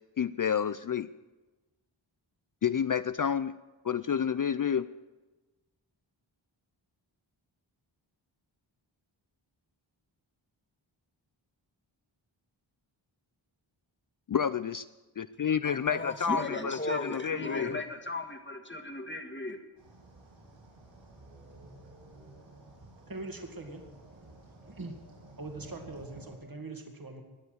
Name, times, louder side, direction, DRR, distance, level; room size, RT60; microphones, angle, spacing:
voice 1, 0.2-1.1 2.6-3.5 3.8-4.9 14.3-14.9 15.2-17.8, left 7 dB, 45° left, 14 dB, 0.4 m, -29 dB
voice 2, 15.6-19.6, left 2 dB, 25° left, 6 dB, 1.8 m, -36 dB
sound 1, 19.8-26.4, right 2 dB, 80° right, 5.1 m, -53 dB
voice 3, 23.1-23.8 24.1-24.4 24.7-25.0 25.4-27.2, right 2 dB, 45° right, 4 dB, 2.3 m, -42 dB
20.5 x 7.1 x 8.0 m, 1.2 s
wide cardioid pair, 60°, 47 cm